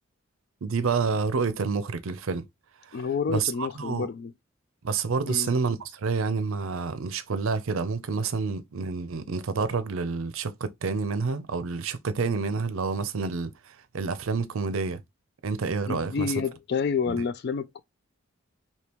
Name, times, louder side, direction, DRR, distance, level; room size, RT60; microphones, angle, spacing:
voice 1, 0.6-2.4 2.9-3.0 3.3-4.1 4.8-15.0 15.4-16.3 17.1-17.2, right 4 dB, 75° right, 0.5 m, -28 dB
voice 2, 2.9-4.3 5.3-5.5 15.9-17.8, left 5 dB, 50° left, 0.3 m, -29 dB
2.9 x 2.8 x 3.4 m
head